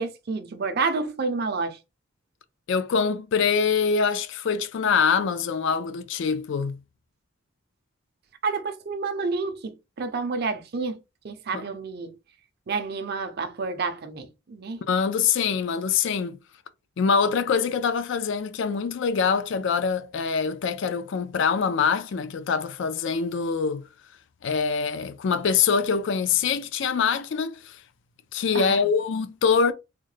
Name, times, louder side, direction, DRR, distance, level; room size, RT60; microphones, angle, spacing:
voice 1, 0.0-1.8 8.4-11.0 11.2-12.1 12.7-14.8 28.5-28.8, right 4 dB, 50° right, 0.5 m, -29 dB
voice 2, 2.7-6.8 11.5-11.6 14.9-16.4 17.0-23.8 24.4-27.8 28.3-29.7, left 6 dB, 60° left, 0.4 m, -24 dB
3.6 x 2.1 x 3.2 m
head